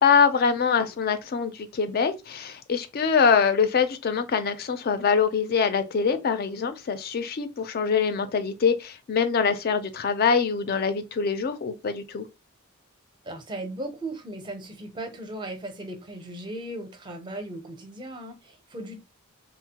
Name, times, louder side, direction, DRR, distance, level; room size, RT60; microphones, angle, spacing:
voice 1, 0.0-12.3, left 6 dB, 45° left, 0.4 m, -24 dB
voice 2, 13.2-19.0, right 1 dB, 20° right, 0.5 m, -37 dB
2.9 x 2.0 x 2.8 m
head